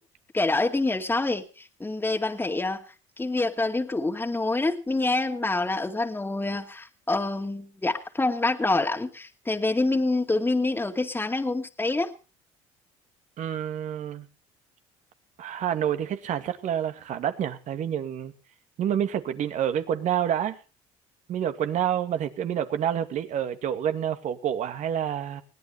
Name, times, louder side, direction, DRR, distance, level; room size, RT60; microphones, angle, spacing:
voice 1, 0.3-2.8 3.2-12.1, left 2 dB, 15° left, 2.3 m, -26 dB
voice 2, 13.4-14.3 15.4-18.3 18.8-20.6 21.3-25.4, right 10 dB, 55° right, 2.2 m, -28 dB
21.0 x 17.5 x 3.3 m
hypercardioid pair, 65°, 15 cm